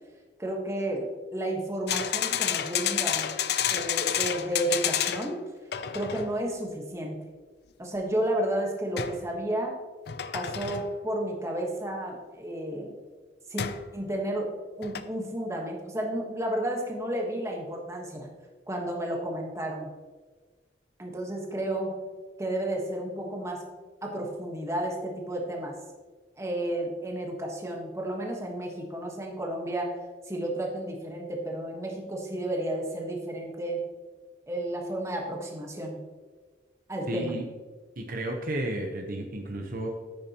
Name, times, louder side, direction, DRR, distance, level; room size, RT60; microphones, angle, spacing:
voice 1, 0.4-3.4 3.7-5.4 5.9-7.2 7.8-9.7 10.3-12.9 13.5-13.6 13.9-18.3 18.7-19.9 21.0-22.0 22.4-23.7 24.0-25.7 26.4-30.0 30.3-33.8 34.5-36.0 36.9-37.3, right 1 dB, 15° right, 0 dB, 1.4 m, -32 dB
sound 1, 1.9-5.4 5.7-6.3 9.0-9.3 10.1-10.9 13.6-13.9 14.8-15.0, left 9 dB, 60° left, 0.5 m, -29 dB
voice 2, 37.1-37.4 38.0-39.9, right 1 dB, 50° right, 3 dB, 1.0 m, -32 dB
10.5 x 8.7 x 3.0 m, 1.4 s
head